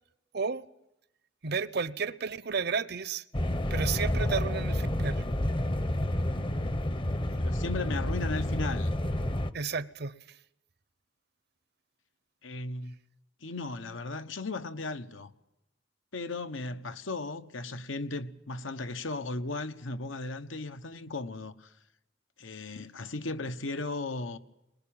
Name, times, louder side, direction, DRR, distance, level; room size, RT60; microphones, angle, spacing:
voice 1, 1.4-3.2 3.7-5.2 9.5-10.1, right 5 dB, 55° right, 0.8 m, -32 dB
sound 1, 3.3-9.5, left 1 dB, 25° left, 0.8 m, -29 dB
voice 2, 7.4-8.9 12.4-13.0 13.4-15.3 16.1-21.7 22.4-24.4, left 3 dB, 80° left, 1.2 m, -36 dB
22.0 x 20.0 x 8.9 m
head